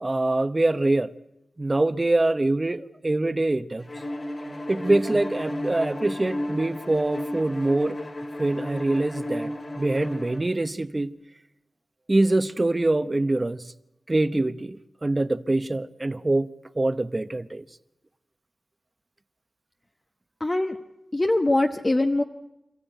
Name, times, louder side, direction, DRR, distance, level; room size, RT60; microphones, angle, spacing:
voice 1, 0.0-1.1 1.6-3.9 4.7-8.0 8.4-11.1 12.1-13.7 14.1-16.5 16.8-17.6, right 2 dB, 30° right, 0.9 m, -24 dB
Bowed string instrument, 3.9-10.5, left 1 dB, 45° left, 3.6 m, -33 dB
voice 2, 20.4-20.8 21.1-22.2, left 2 dB, 30° left, 1.0 m, -22 dB
27.0 x 14.5 x 9.1 m
wide cardioid pair, 65°, 0 cm